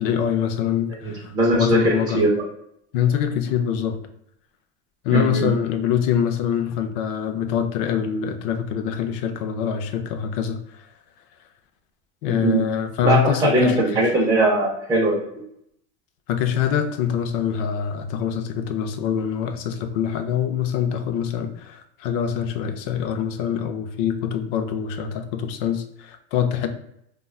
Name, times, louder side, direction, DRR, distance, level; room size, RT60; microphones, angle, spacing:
voice 1, 0.0-2.2 2.9-4.0 5.0-10.9 12.2-14.1 16.3-26.7, left 8 dB, 55° left, 8 dB, 0.4 m, -24 dB
voice 2, 1.0-2.4 5.1-5.4 12.4-12.6 13.0-15.2, right 2 dB, 15° right, -6 dB, 0.4 m, -20 dB
3.5 x 2.2 x 2.3 m, 0.74 s
supercardioid pair, 145°, 33 cm